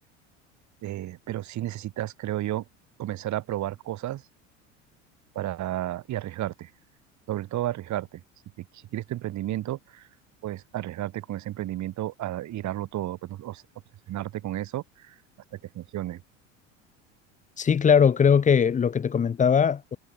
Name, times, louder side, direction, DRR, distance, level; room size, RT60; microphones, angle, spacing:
voice 1, 0.8-2.6 3.0-4.2 5.4-6.7 7.3-8.2 8.7-10.1 10.4-13.6 14.1-15.2 15.5-16.2, right 14 dB, 45° right, 5.3 m, -32 dB
voice 2, 17.6-20.0, left 7 dB, 20° left, 0.9 m, -20 dB
hypercardioid pair, 75°, 38 cm